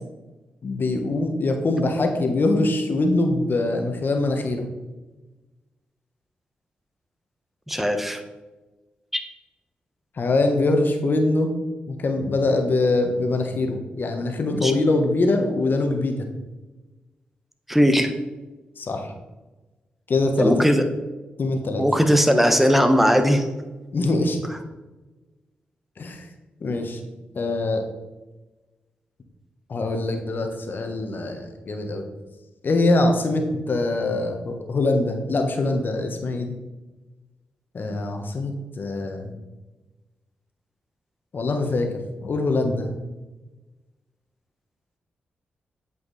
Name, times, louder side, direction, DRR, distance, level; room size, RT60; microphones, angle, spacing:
voice 1, 0.6-4.7 10.1-11.5 11.9-16.3 18.8-19.1 20.1-20.5 21.4-21.8 23.9-24.4 26.0-26.3 26.6-27.0 27.3-27.8 29.7-32.1 32.6-36.5 37.7-39.3 41.3-41.9 42.2-42.9, left 2 dB, 55° left, 5 dB, 1.3 m, -23 dB
voice 2, 7.7-8.2 9.1-9.2 14.5-14.7 17.7-18.1 20.4-20.8 21.8-23.5, equal, 5° right, 7 dB, 1.2 m, -19 dB
8.1 x 5.5 x 4.1 m, 1.2 s
supercardioid pair, 50°, 4 cm